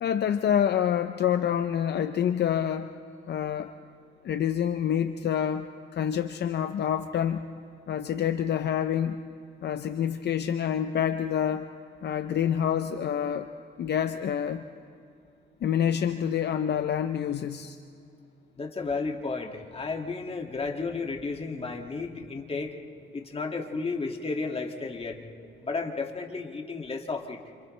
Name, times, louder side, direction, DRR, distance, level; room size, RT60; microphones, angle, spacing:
voice 1, 0.0-2.9 3.3-3.7 4.2-5.7 5.9-7.5 7.9-9.2 9.6-11.7 12.0-13.5 13.8-14.6 15.6-17.8, left 9 dB, 60° left, 9 dB, 0.7 m, -27 dB
voice 2, 18.6-22.7 23.1-25.2 25.6-27.4, left 4 dB, 30° left, 2 dB, 2.3 m, -33 dB
28.5 x 27.5 x 3.3 m, 2.6 s
cardioid pair, 90°, 20 cm